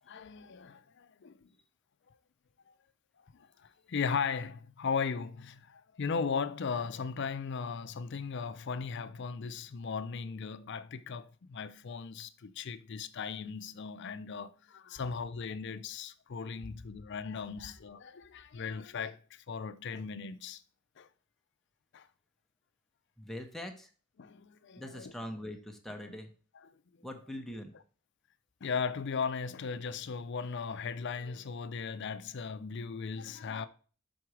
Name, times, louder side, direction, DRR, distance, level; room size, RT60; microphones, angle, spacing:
voice 1, 0.1-1.4 3.4-3.5 3.9-20.6 21.0-21.1 21.9-22.1 24.2-25.1 26.1-26.2 28.6-33.7, left 5 dB, 55° left, 0.5 m, -37 dB
voice 2, 23.2-23.9 24.7-26.3 27.0-27.7, left 1 dB, ahead, 0.8 m, -42 dB
6.1 x 3.9 x 4.6 m
head